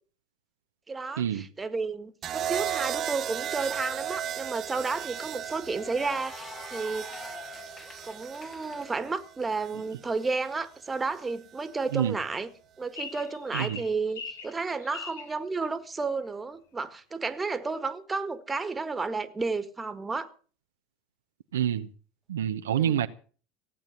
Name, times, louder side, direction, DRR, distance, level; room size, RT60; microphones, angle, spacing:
voice 1, 0.9-7.1 8.0-12.5 12.8-20.3 22.7-23.0, right 4 dB, 20° right, 1.7 m, -32 dB
sound 1, 2.2-10.4 11.6-12.0, right 10 dB, 45° right, 1.0 m, -36 dB
Cheering / Applause, 3.0-3.1 3.5-8.9, left 4 dB, 30° left, 1.8 m, -47 dB
sound 2, 12.9-15.3, left 5 dB, 85° left, 2.1 m, -40 dB
voice 2, 21.5-21.9 22.3-23.1, right 10 dB, 85° right, 0.9 m, -27 dB
16.5 x 8.9 x 7.0 m
hypercardioid pair, 90°, 0 cm